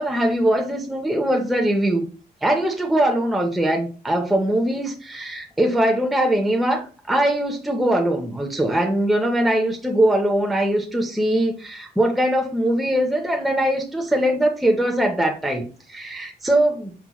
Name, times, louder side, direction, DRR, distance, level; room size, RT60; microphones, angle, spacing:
voice 1, 0.0-2.1 2.4-16.9, right 1 dB, ahead, 0.4 m, -21 dB
5.6 x 2.8 x 2.3 m
wide cardioid pair, 175°, 17 cm